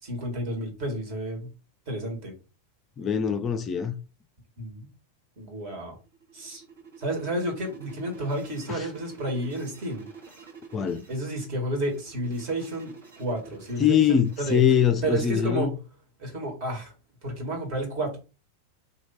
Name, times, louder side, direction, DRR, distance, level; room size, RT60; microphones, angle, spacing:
voice 1, 0.0-1.5 1.9-2.3 4.6-4.9 5.4-6.0 6.3-6.6 7.0-10.1 11.1-12.9 13.2-14.6 15.0-15.7 16.2-16.9 17.2-18.2, right 1 dB, 45° right, 1.7 m, -31 dB
voice 2, 3.0-4.0 8.7-8.9 10.7-11.1 13.8-15.7, left 8 dB, 25° left, 0.4 m, -23 dB
sound 1, 6.0-15.3, right 6 dB, 65° right, 1.7 m, -48 dB
2.9 x 2.8 x 4.2 m
figure-of-eight pair, 90°, 0 cm